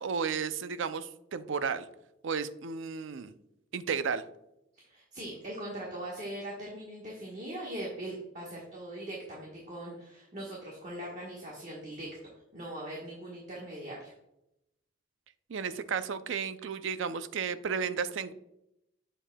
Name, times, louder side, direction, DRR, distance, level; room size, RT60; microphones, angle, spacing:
voice 1, 0.0-1.9 2.2-3.3 3.7-4.2 15.5-18.3, right 6 dB, 65° right, 12 dB, 0.4 m, -33 dB
voice 2, 4.7-12.1 12.5-14.1, right 1 dB, 35° right, -3 dB, 1.3 m, -41 dB
7.3 x 6.7 x 2.2 m, 0.84 s
head